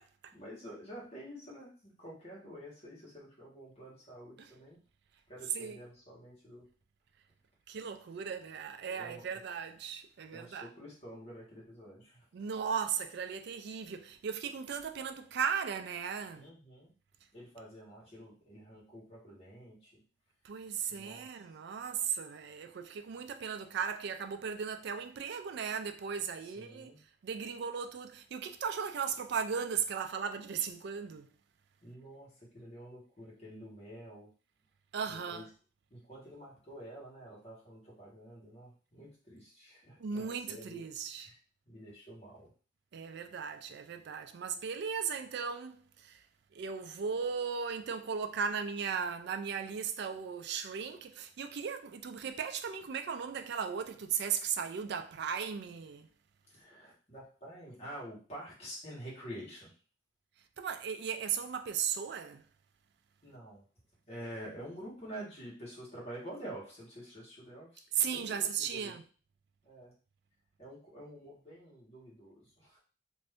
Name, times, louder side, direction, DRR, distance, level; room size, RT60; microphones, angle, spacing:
voice 1, 0.3-4.8 5.3-6.7 8.9-9.4 10.3-12.3 16.3-16.9 17.3-20.0 20.9-21.5 26.4-27.0 31.8-34.3 35.0-35.5 35.9-40.8 41.1-41.4 41.6-42.5 56.5-59.7 63.2-63.6 64.0-69.0 69.6-69.9 70.6-72.8, right 1 dB, 35° left, 1.3 m, -48 dB
voice 2, 7.7-10.7 12.3-16.5 20.4-26.9 27.2-31.3 34.9-35.4 40.0-41.3 42.9-46.2 46.5-56.1 60.6-62.4 68.0-69.0, right 7 dB, 60° right, 0.4 m, -36 dB
2.6 x 2.5 x 3.4 m
head